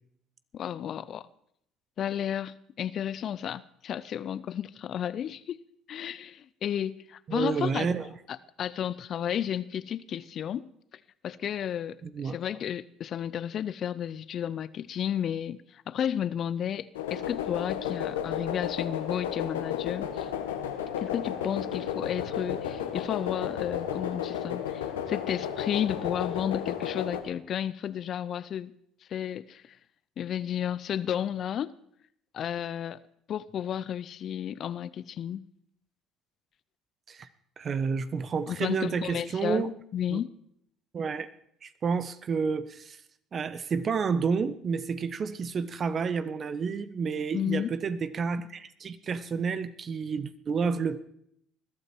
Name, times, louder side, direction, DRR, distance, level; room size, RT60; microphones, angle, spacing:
voice 1, 0.5-1.3 2.0-5.6 5.9-7.9 8.3-10.7 11.2-20.3 21.0-28.7 29.1-29.8 30.2-31.7 32.3-33.0 33.3-35.4 38.5-40.3 47.3-47.7, left 9 dB, 50° left, 0.6 m, -32 dB
voice 2, 7.3-8.1 12.0-12.4 37.1-37.3 37.6-39.7 40.1-40.2 40.9-41.3 41.6-43.0 43.3-51.0, right 5 dB, 40° right, 1.2 m, -30 dB
sound 1, 16.9-27.2, left 9 dB, 85° left, 1.5 m, -33 dB
21.0 x 12.5 x 4.6 m
hypercardioid pair, 60°, 0 cm